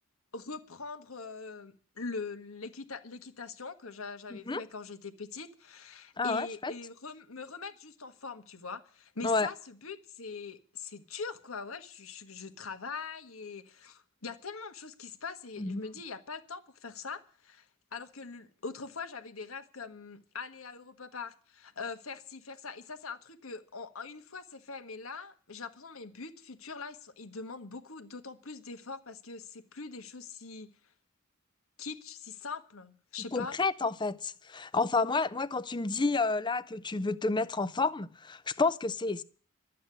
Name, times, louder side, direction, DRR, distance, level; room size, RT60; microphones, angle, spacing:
voice 1, 0.3-30.7 31.8-33.6, left 4 dB, 80° left, 1.5 m, -42 dB
voice 2, 4.3-4.6 6.2-6.7 9.2-9.5 15.6-15.8 33.3-39.2, left 3 dB, 20° left, 0.6 m, -30 dB
12.5 x 8.5 x 9.7 m
head